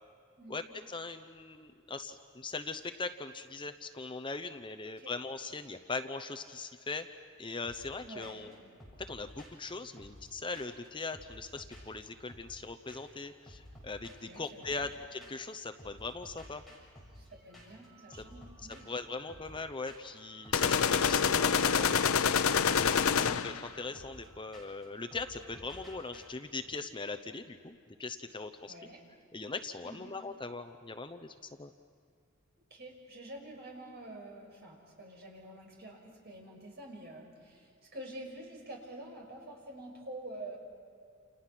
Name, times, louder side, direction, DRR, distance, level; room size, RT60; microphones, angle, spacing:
voice 1, 0.5-7.1 7.4-8.6 9.1-16.6 18.9-22.2 22.6-28.7 29.3-31.7, left 3 dB, 25° left, 9 dB, 0.8 m, -40 dB
sound 1, 7.6-8.0 8.2-8.5 8.8-10.9 11.1-12.6 12.9-13.2 13.5-15.5 15.8-26.2, equal, ahead, 6.8 m, -54 dB
voice 2, 8.0-8.5 14.2-14.9 17.2-18.8 23.0-23.4 28.7-29.0 29.8-30.1 32.7-40.6, right 1 dB, 50° right, 0 dB, 6.1 m, -48 dB
sound 2, 20.5-23.7, left 7 dB, 80° left, 0.7 m, -27 dB
29.5 x 29.0 x 6.0 m, 2.3 s
head